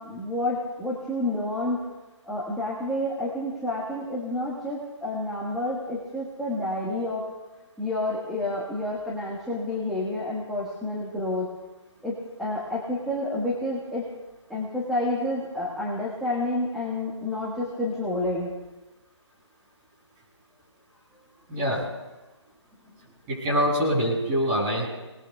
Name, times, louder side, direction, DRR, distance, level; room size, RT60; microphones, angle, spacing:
voice 1, 0.0-1.8 2.2-7.2 7.8-11.5 12.0-14.1 14.5-18.5, left 1 dB, ahead, -7 dB, 1.7 m, -29 dB
voice 2, 21.5-21.8 23.3-24.9, equal, 20° right, -5 dB, 7.4 m, -24 dB
29.0 x 20.0 x 2.4 m, 1.2 s
figure-of-eight pair, 150°, 16 cm